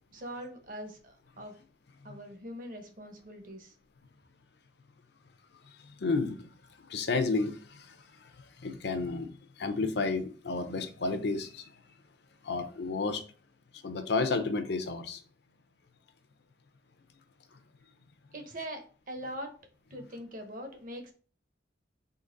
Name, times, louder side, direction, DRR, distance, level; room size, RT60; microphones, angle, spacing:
voice 1, 0.1-1.6 2.0-3.7 18.3-19.5 19.9-21.1, equal, 50° right, 0.9 m, -42 dB
voice 2, 6.0-6.5 6.9-7.9 8.6-9.3 9.6-11.7 12.4-13.2 13.8-15.2, left 3 dB, 65° left, 0.6 m, -31 dB
3.9 x 2.9 x 3.9 m
head